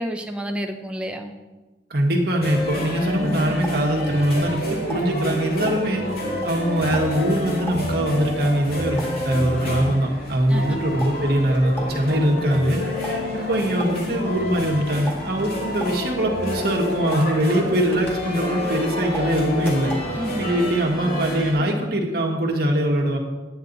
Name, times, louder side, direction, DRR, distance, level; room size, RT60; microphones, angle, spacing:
voice 1, 0.0-1.3 10.5-10.8 20.2-20.6, equal, 5° right, 3 dB, 0.8 m, -30 dB
voice 2, 1.9-6.0 6.4-23.2, right 1 dB, 60° right, 1 dB, 1.6 m, -22 dB
sound 1, 2.4-21.5, left 1 dB, 60° left, 2.5 m, -28 dB
sound 2, 3.6-4.6 4.9-9.4 11.0-18.8 19.1-20.1, equal, 15° left, 2.0 m, -39 dB
9.5 x 9.5 x 4.1 m, 1.2 s
head